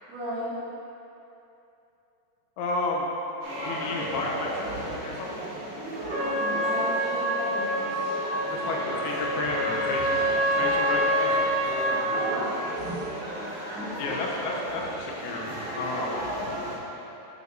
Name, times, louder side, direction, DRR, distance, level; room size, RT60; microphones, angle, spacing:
voice 1, 0.1-0.5 6.2-8.1 12.1-13.0, equal, 60° right, -13 dB, 2.8 m, -34 dB
voice 2, 2.6-3.1 3.6-5.4 8.5-10.2 10.6-11.5 14.0-16.2, left 2 dB, 85° left, -2 dB, 2.5 m, -32 dB
sound 1, 3.4-16.8, right 1 dB, 85° right, 3.6 m, -34 dB
Trumpet, 6.1-12.3, equal, 45° right, 0.8 m, -27 dB
8.8 x 7.1 x 3.2 m, 2.8 s
omnidirectional pair, 3.8 m